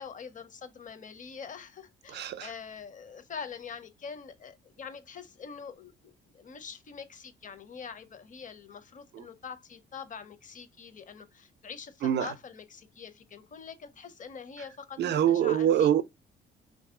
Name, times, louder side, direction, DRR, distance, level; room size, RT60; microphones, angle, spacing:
voice 1, 0.0-15.9, left 6 dB, 40° left, 0.7 m, -44 dB
voice 2, 2.1-2.5 9.1-9.2 12.0-12.3 15.0-16.0, right 10 dB, 60° right, 0.4 m, -25 dB
3.1 x 2.6 x 3.5 m
cardioid pair, 90°, 20 cm